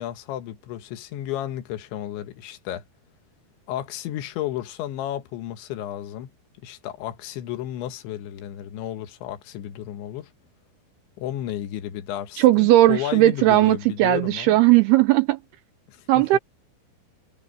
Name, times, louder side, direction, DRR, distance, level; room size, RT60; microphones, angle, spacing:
voice 1, 0.0-2.8 3.7-6.3 6.6-10.3 11.2-14.6 15.9-16.4, left 12 dB, 80° left, 3.7 m, -33 dB
voice 2, 12.4-15.4 16.1-16.4, right 16 dB, 80° right, 2.3 m, -17 dB
omnidirectional pair, 5.3 m